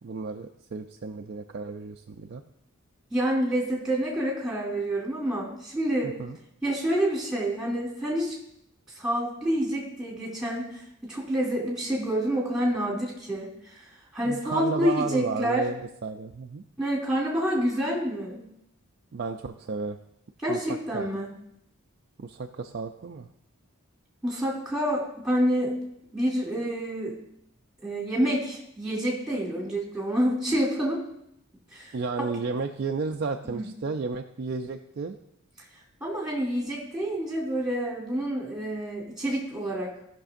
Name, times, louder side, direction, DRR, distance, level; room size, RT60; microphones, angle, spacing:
voice 1, 0.0-2.4 6.0-6.4 14.2-16.6 19.1-20.0 20.5-20.6 20.9-21.1 22.2-23.3 31.9-35.2, right 4 dB, 50° right, 3 dB, 0.4 m, -33 dB
voice 2, 3.1-6.2 6.6-8.3 8.9-13.8 14.1-15.6 16.8-18.4 20.4-21.3 24.2-25.7 26.1-27.1 27.8-31.0 31.7-32.0 32.4-32.5 33.5-33.7 36.0-40.1, equal, 5° right, -4 dB, 2.5 m, -28 dB
16.0 x 6.0 x 2.5 m, 0.76 s
head